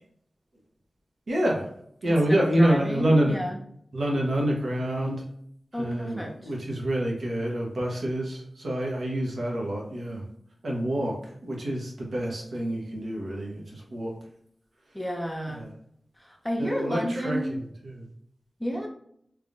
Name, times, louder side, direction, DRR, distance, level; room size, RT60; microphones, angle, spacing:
voice 1, 1.3-1.6 2.0-3.4 3.9-5.2 5.7-10.2 10.6-14.1 15.5-15.7 16.6-17.6 18.0-18.1, right 1 dB, 80° right, -2 dB, 1.2 m, -27 dB
voice 2, 2.0-3.6 5.7-6.5 14.9-15.7 16.2-17.5 18.6-18.9, equal, ahead, 0 dB, 0.9 m, -31 dB
3.4 x 3.2 x 2.6 m, 0.69 s
wide cardioid pair, 80°, 0 cm